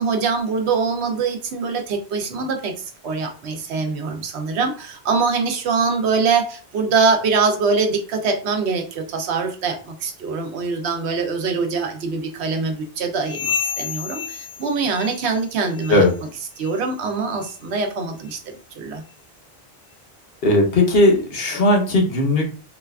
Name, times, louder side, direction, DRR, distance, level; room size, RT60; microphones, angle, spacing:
voice 1, 0.0-16.1 16.6-19.0, right 4 dB, 85° right, 5 dB, 0.9 m, -23 dB
sound 1, 13.2-15.5 15.7-16.1 16.6-16.8 17.4-17.6 18.3-18.4 19.1-19.2, left 8 dB, 40° left, 0.8 m, -30 dB
voice 2, 20.4-22.5, left 1 dB, 65° left, 1 dB, 1.1 m, -17 dB
3.9 x 2.3 x 2.3 m, 0.36 s
omnidirectional pair, 1.1 m